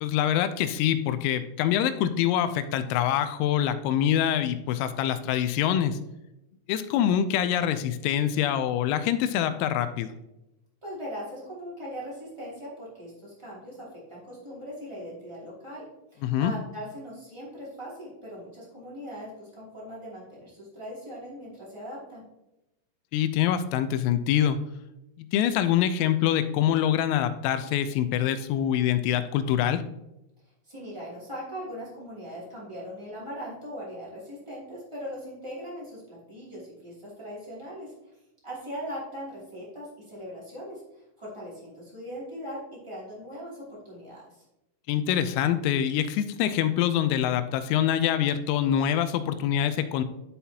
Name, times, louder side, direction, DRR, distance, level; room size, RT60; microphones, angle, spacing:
voice 1, 0.0-6.0 6.7-10.1 16.2-16.5 23.1-24.6 25.2-29.8 44.9-50.0, left 10 dB, 90° left, 10 dB, 3.3 m, -25 dB
voice 2, 10.8-15.9 16.1-22.2 30.6-37.9 38.4-44.4, equal, 25° right, -8 dB, 0.6 m, -40 dB
12.0 x 5.5 x 2.8 m, 0.91 s
omnidirectional pair, 5.9 m